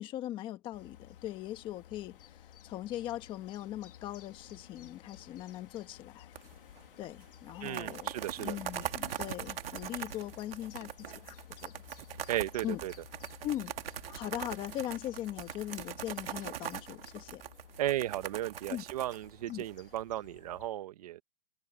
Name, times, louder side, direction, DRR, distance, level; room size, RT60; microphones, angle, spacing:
voice 1, 0.0-6.3 7.0-11.8 12.6-12.8 13.4-13.7 14.1-17.4 18.7-18.8 19.5-19.6, left 13 dB, 15° left, 1.4 m, -40 dB
sound 1, 0.7-20.7, left 10 dB, 60° left, 2.4 m, -55 dB
sound 2, 6.4-6.8 7.0-7.1 7.5-20.0, right 10 dB, 70° right, 2.5 m, -41 dB
voice 2, 7.6-8.6 12.3-12.9 17.8-21.2, right 13 dB, 40° right, 1.2 m, -35 dB
hypercardioid pair, 170°, 30 cm